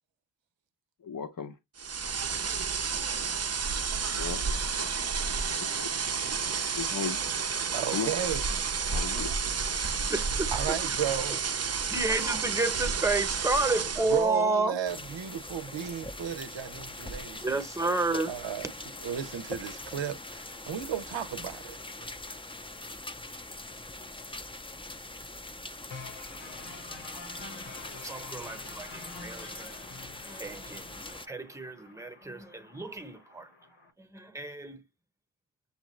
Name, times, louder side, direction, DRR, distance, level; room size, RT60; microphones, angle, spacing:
voice 1, 1.0-1.6 4.1-4.9 5.4-5.9 6.2-7.5 7.9-8.1 8.9-9.8, left 6 dB, 50° left, 0.7 m, -38 dB
sound 1, 1.8-14.3, right 5 dB, 35° right, 0.5 m, -31 dB
voice 2, 7.7-8.4 10.5-11.4 14.0-17.6 18.3-18.7 19.0-21.8, right 8 dB, 85° right, 0.7 m, -34 dB
voice 3, 10.1-10.5 11.9-14.8 17.3-18.3 28.0-29.8 30.2-33.5 34.0-34.8, right 2 dB, 5° right, 0.9 m, -31 dB
sound 2, 14.8-31.3, left 2 dB, 10° left, 0.5 m, -42 dB
sound 3, 25.9-33.9, left 3 dB, 85° left, 1.4 m, -48 dB
6.8 x 2.5 x 3.0 m
wide cardioid pair, 55°, 44 cm